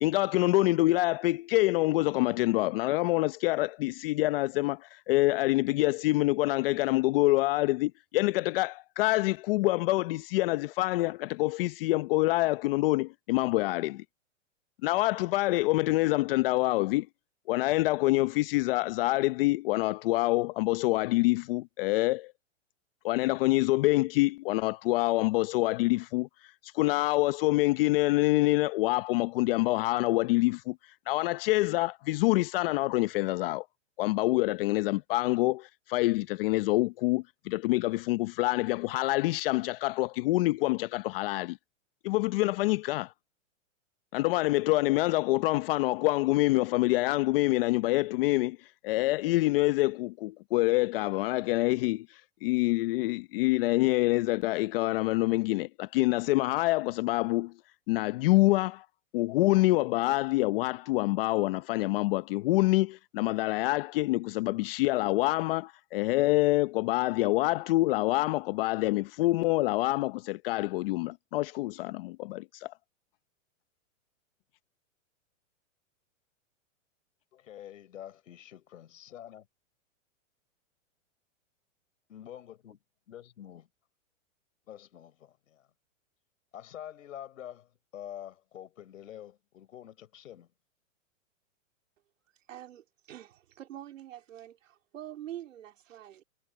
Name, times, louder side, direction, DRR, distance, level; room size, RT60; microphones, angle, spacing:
voice 1, 0.0-14.0 14.8-17.1 17.5-22.3 23.0-26.3 26.6-30.8 31.1-33.6 34.0-41.6 42.0-43.1 44.1-48.6 48.8-57.5 57.9-58.9 59.1-72.7, left 19 dB, 45° left, 0.8 m, -26 dB
voice 2, 77.3-79.4 82.1-82.8 83.1-83.7 84.7-85.7 86.5-90.5, left 11 dB, 80° left, 4.5 m, -46 dB
voice 3, 92.5-96.2, right 12 dB, 80° right, 3.6 m, -45 dB
hypercardioid pair, 140°, 38 cm